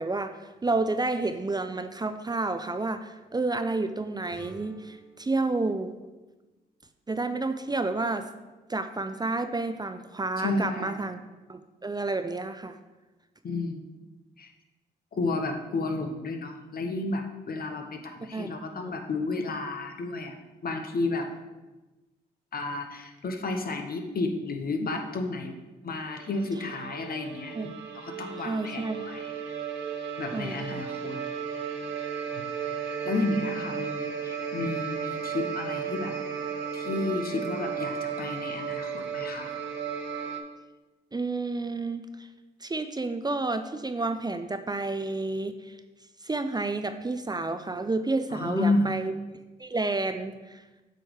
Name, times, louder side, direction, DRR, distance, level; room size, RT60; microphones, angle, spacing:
voice 1, 0.0-5.9 7.1-8.3 8.7-11.2 11.5-12.8 18.3-18.9 27.5-27.8 28.4-29.1 30.3-30.8 41.1-42.3 42.6-45.8 46.2-49.1 49.6-50.6, right 3 dB, 20° right, 9 dB, 0.5 m, -30 dB
sound 1, 4.3-7.2, right 1 dB, 75° left, 1.9 m, -52 dB
voice 2, 10.4-11.0 13.4-13.8 14.4-14.5 15.1-20.3 20.6-21.3 22.5-25.5 25.8-29.3 30.2-31.2 31.6-31.8 32.3-32.4 32.9-36.1 36.7-39.5 48.3-49.0, left 3 dB, 55° left, 5 dB, 0.9 m, -31 dB
sound 2, 26.1-40.4, right 7 dB, 80° right, 0.6 m, -34 dB
7.8 x 3.1 x 5.0 m, 1.1 s
supercardioid pair, 45°, 19 cm